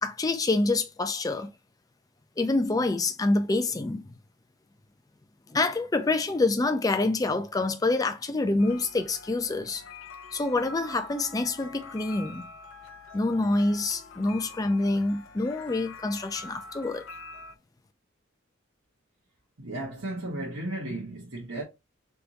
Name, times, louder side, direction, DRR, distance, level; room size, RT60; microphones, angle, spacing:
voice 1, 0.0-1.5 2.4-4.1 5.5-9.8 10.3-12.5 13.1-17.1, left 2 dB, 20° left, 0.4 m, -26 dB
sound 1, 8.6-17.6, left 4 dB, 80° left, 0.5 m, -45 dB
voice 2, 19.6-21.6, right 1 dB, 80° right, 1.2 m, -34 dB
3.4 x 2.6 x 2.9 m
head